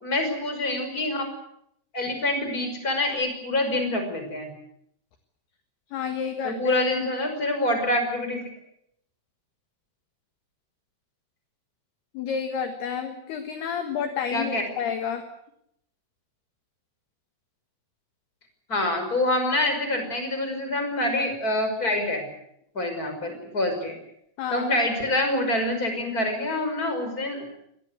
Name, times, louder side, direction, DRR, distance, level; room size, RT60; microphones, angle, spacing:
voice 1, 0.0-1.3 1.9-4.5 6.4-8.5 14.3-14.6 18.7-22.3 22.7-24.0 24.5-27.5, left 1 dB, 15° left, 6 dB, 5.5 m, -26 dB
voice 2, 5.9-6.8 12.1-15.3 24.4-24.7, left 7 dB, 60° left, 7 dB, 3.1 m, -30 dB
25.5 x 19.0 x 8.2 m, 0.74 s
omnidirectional pair, 6.0 m